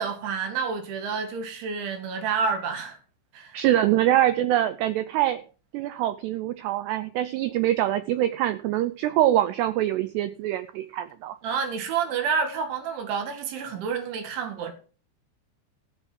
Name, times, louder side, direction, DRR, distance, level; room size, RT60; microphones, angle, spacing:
voice 1, 0.0-3.0 3.3-3.6 11.4-14.7, right 6 dB, 70° right, 4.4 m, -29 dB
voice 2, 3.5-5.4 5.7-11.4, right 13 dB, 85° right, 2.4 m, -24 dB
15.0 x 7.0 x 6.0 m
omnidirectional pair, 5.7 m